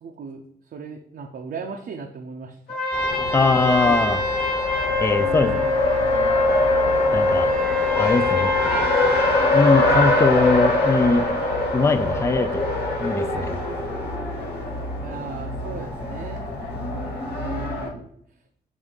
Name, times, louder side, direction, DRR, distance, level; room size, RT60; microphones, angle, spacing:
voice 1, 0.0-2.8 3.2-4.0 5.2-5.9 15.0-16.5 16.9-18.1, right 5 dB, 75° right, 1 dB, 0.7 m, -37 dB
Trumpet, 2.7-10.3, left 3 dB, 60° left, 2.5 m, -23 dB
Race car auto racing, 2.9-17.9, left 2 dB, 85° left, 2.0 m, -24 dB
voice 2, 3.3-4.2 5.0-5.6 7.1-7.5 8.0-8.5 9.5-11.4 11.7-12.7 13.0-13.6, left 3 dB, 15° left, 10 dB, 0.4 m, -21 dB
7.1 x 2.6 x 5.2 m, 0.68 s
cardioid pair, 105°, 16 cm